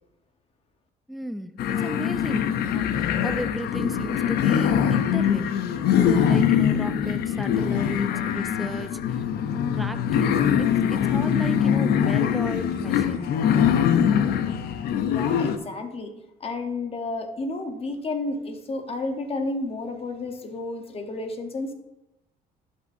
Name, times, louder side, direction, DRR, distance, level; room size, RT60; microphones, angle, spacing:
voice 1, 1.1-9.2 9.7-13.3, equal, ahead, 10 dB, 0.4 m, -34 dB
sound 1, 1.6-15.6, left 9 dB, 70° left, 0.6 m, -23 dB
voice 2, 15.1-16.1 16.4-21.7, left 2 dB, 35° left, 6 dB, 1.0 m, -31 dB
11.0 x 5.4 x 2.7 m, 0.93 s
cardioid pair, 110°, 17 cm